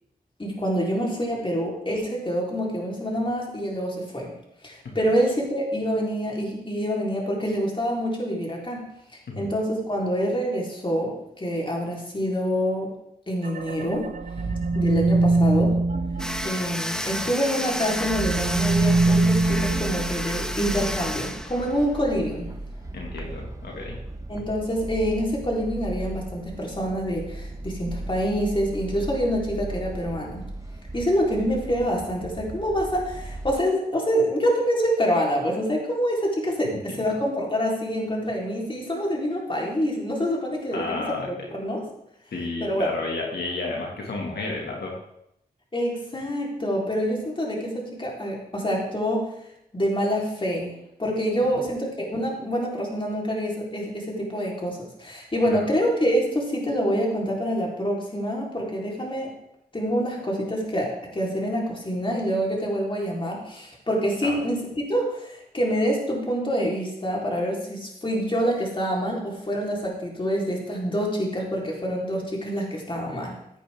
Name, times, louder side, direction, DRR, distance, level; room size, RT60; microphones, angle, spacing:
voice 1, 0.4-4.3 4.6-8.9 9.4-12.9 13.3-14.1 14.7-15.8 16.4-22.5 24.3-30.4 30.9-41.9 42.6-42.9 45.7-49.3 49.7-59.3 59.7-73.3, equal, 30° left, -2 dB, 3.9 m, -26 dB
sound 1, 13.4-17.3 17.7-21.1, right 3 dB, 55° right, 0.8 m, -24 dB
voice 2, 14.4-14.8 22.9-24.0 37.0-37.1 40.7-41.3 42.3-45.0 51.4-51.6 55.5-55.6 64.2-64.5, left 3 dB, 90° left, -1 dB, 2.1 m, -32 dB
sound 2, 16.2-22.2, equal, 5° left, 0.9 m, -31 dB
sound 3, 18.1-33.6, right 2 dB, 20° right, 1.2 m, -37 dB
15.5 x 8.7 x 3.7 m, 0.79 s
cardioid pair, 65°, 16 cm